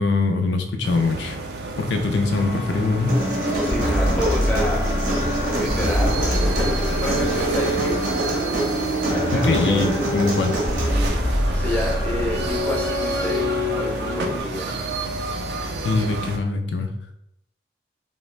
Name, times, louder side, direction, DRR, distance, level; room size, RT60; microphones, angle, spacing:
voice 1, 0.0-1.4 1.8-3.2 9.3-10.6 15.8-16.9, left 3 dB, 80° left, 5 dB, 0.4 m, -22 dB
sound 1, 0.8-16.4, right 2 dB, 65° right, 0.3 m, -31 dB
sound 2, 2.3-14.4, equal, 60° left, 0.7 m, -25 dB
Human voice, 3.1-11.1, right 1 dB, 50° right, 0.7 m, -26 dB
voice 2, 3.6-4.8 5.6-8.0 9.1-9.8 11.5-14.7, left 1 dB, 10° left, -2 dB, 0.4 m, -29 dB
2.4 x 2.0 x 3.1 m, 0.77 s
head